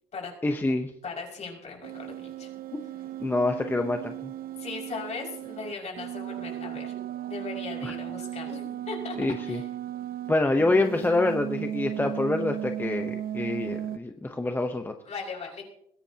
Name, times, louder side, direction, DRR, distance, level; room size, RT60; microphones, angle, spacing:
voice 1, 0.4-0.9 2.7-2.8 3.2-4.3 7.8-7.9 9.2-9.6 10.3-14.9, left 2 dB, 10° left, 5 dB, 0.9 m, -26 dB
voice 2, 1.0-2.5 4.6-6.9 7.3-9.2 9.5-9.7 15.1-15.6, left 4 dB, 40° left, -1 dB, 5.7 m, -38 dB
sound 1, 1.8-10.3 10.6-14.0, right 12 dB, 60° right, 0.7 m, -36 dB
21.0 x 16.5 x 2.9 m, 0.74 s
cardioid pair, 110°, 17 cm